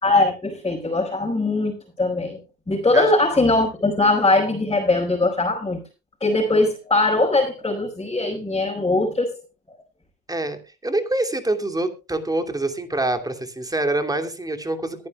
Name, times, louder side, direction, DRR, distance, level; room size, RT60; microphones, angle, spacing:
voice 1, 0.0-2.4 2.7-5.8 6.2-9.4, left 2 dB, 15° left, -3 dB, 4.8 m, -21 dB
voice 2, 10.3-15.1, right 2 dB, 10° right, 6 dB, 2.6 m, -25 dB
22.5 x 9.8 x 2.3 m, 0.30 s
hypercardioid pair, 80°, 32 cm